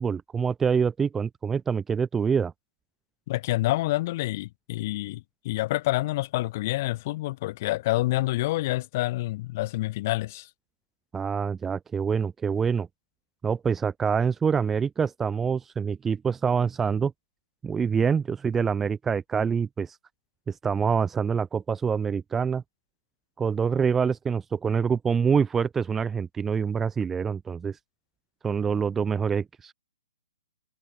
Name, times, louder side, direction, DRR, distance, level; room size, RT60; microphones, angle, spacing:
voice 1, 0.0-2.5 11.1-12.9 13.4-17.1 17.6-20.0 20.5-22.6 23.4-27.8 28.4-29.7, right 6 dB, 10° right, 0.8 m, -26 dB
voice 2, 3.3-10.5, left 18 dB, 40° left, 3.3 m, -27 dB
figure-of-eight pair, 125°, 2 cm